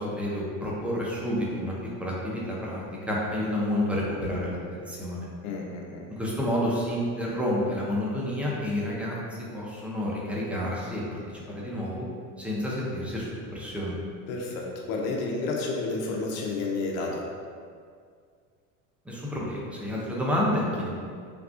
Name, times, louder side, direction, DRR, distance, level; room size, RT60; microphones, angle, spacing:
voice 1, 0.0-1.7 2.0-5.3 6.1-9.2 9.5-12.1 12.4-14.0 19.0-20.9, left 1 dB, 5° right, -5 dB, 0.5 m, -29 dB
voice 2, 5.4-6.0 14.3-17.3, left 3 dB, 80° left, -1 dB, 0.7 m, -31 dB
3.4 x 2.3 x 2.4 m, 2.1 s
supercardioid pair, 105°, 40 cm